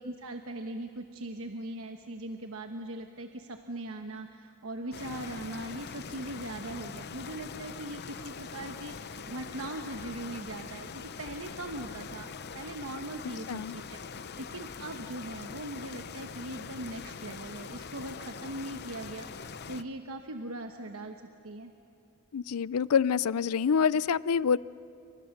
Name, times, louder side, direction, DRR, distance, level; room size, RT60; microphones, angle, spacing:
voice 1, 0.0-14.0 14.4-21.7, right 1 dB, 65° right, 5 dB, 1.1 m, -40 dB
sound 1, 4.9-19.8, left 5 dB, 50° left, 0.7 m, -43 dB
voice 2, 22.3-24.6, left 6 dB, 85° left, 20 dB, 0.5 m, -26 dB
28.5 x 25.5 x 6.6 m, 2.8 s
head